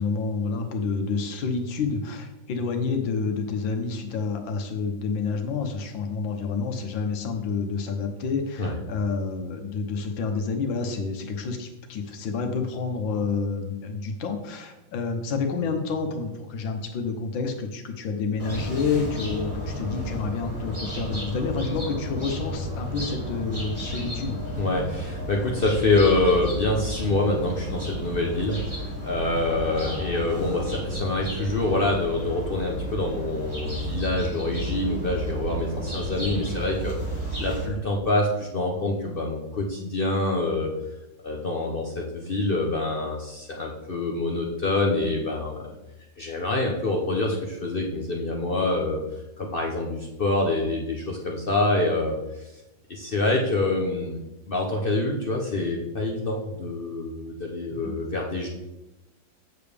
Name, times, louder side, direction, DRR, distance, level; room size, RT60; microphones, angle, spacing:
voice 1, 0.0-24.4 29.8-29.9 57.8-57.9, left 4 dB, 90° left, 5 dB, 1.6 m, -29 dB
sound 1, 18.4-37.6, right 1 dB, 15° right, 2.4 m, -32 dB
voice 2, 24.6-37.0 37.4-40.7 41.2-45.7 46.2-49.0 49.4-52.4 52.9-54.2 54.5-58.5, left 2 dB, 55° left, 0 dB, 0.6 m, -26 dB
7.7 x 6.9 x 3.4 m, 0.97 s
omnidirectional pair, 2.0 m